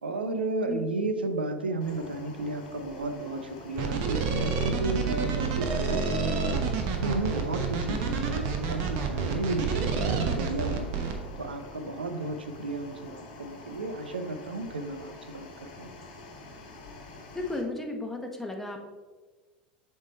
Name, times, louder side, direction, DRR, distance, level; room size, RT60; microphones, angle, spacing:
voice 1, 0.0-6.5 7.0-11.0 11.4-15.9, right 2 dB, 85° right, 8 dB, 0.6 m, -33 dB
sound 1, 1.8-17.6, left 2 dB, 65° left, 1.4 m, -47 dB
sound 2, 3.8-11.1, right 5 dB, 55° right, 0.9 m, -28 dB
voice 2, 17.3-18.8, left 2 dB, 5° left, 2 dB, 1.0 m, -34 dB
7.1 x 3.5 x 4.1 m, 1.4 s
figure-of-eight pair, 85°, 5 cm